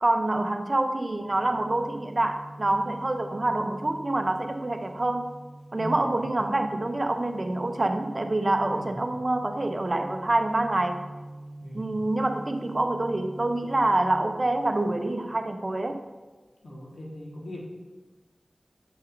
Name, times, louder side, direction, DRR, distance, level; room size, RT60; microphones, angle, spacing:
voice 1, 0.0-5.3 5.7-11.1 11.7-16.0, right 2 dB, 45° right, 7 dB, 0.5 m, -26 dB
sound 1, 1.2-15.7, right 1 dB, 5° left, 0.7 m, -45 dB
voice 2, 5.7-6.4 8.7-9.0 11.6-12.0 16.6-17.6, equal, 85° left, -4 dB, 1.3 m, -39 dB
7.1 x 5.5 x 2.5 m, 1.2 s
wide cardioid pair, 55°, 0 cm